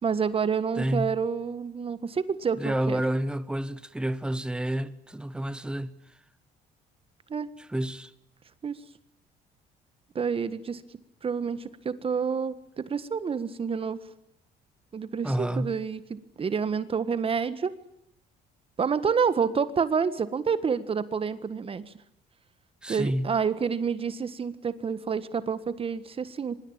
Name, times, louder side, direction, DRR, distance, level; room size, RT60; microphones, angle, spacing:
voice 1, 0.0-3.0 7.3-7.5 8.6-8.8 10.1-10.8 11.2-14.0 14.9-17.7 18.8-21.9 22.9-26.5, right 6 dB, 35° right, 1.6 m, -28 dB
voice 2, 0.8-1.2 2.5-6.0 7.6-8.1 15.2-15.8 22.8-23.4, right 1 dB, 5° right, 1.3 m, -29 dB
25.0 x 22.0 x 9.0 m
cardioid pair, 110°, 17 cm